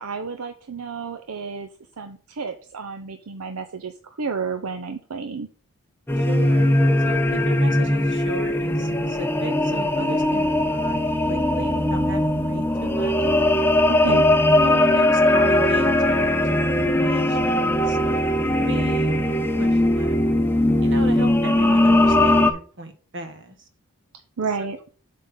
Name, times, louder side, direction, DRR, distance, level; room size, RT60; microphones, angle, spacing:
voice 1, 0.0-1.7 2.0-5.5 13.9-14.2 24.4-24.8, right 5 dB, 70° right, 6 dB, 0.7 m, -31 dB
sound 1, 6.1-22.5, left 1 dB, 10° left, 0.6 m, -20 dB
voice 2, 6.2-6.8 7.0-13.1 14.0-14.1 14.6-20.2 20.8-23.7 24.6-24.7, right 1 dB, 55° right, 7 dB, 1.3 m, -36 dB
7.7 x 3.7 x 5.5 m, 0.41 s
head